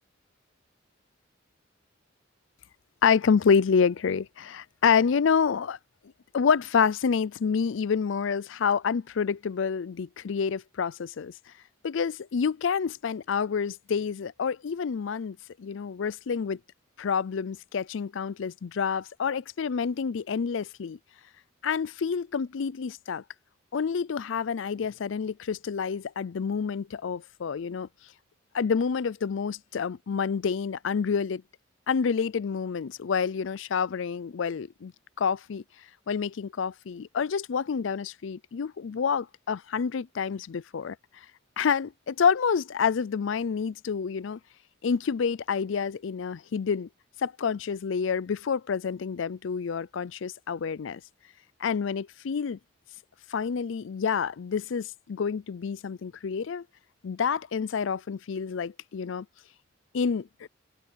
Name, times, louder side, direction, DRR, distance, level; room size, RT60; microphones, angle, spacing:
voice 1, 3.0-5.8 6.3-11.3 11.8-16.6 17.0-21.0 21.6-23.2 23.7-27.9 28.5-31.4 31.9-34.9 35.2-35.6 36.1-41.0 41.6-44.4 44.8-46.9 47.2-51.0 51.6-52.6 53.3-56.6 57.0-59.3 59.9-60.5, left 6 dB, 70° left, 0.4 m, -28 dB
open air
head